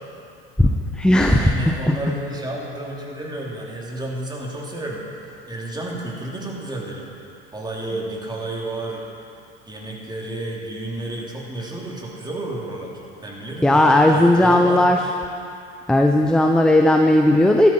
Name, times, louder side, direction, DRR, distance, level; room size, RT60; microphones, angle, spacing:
voice 1, 0.6-2.0 13.6-15.0 15.9-17.7, left 1 dB, 5° left, 3 dB, 0.7 m, -16 dB
voice 2, 1.2-5.0 5.5-7.1 7.5-9.0 9.7-14.9, right 1 dB, 15° right, -3 dB, 3.0 m, -31 dB
13.5 x 12.5 x 4.5 m, 2.5 s
hypercardioid pair, 80°, 31 cm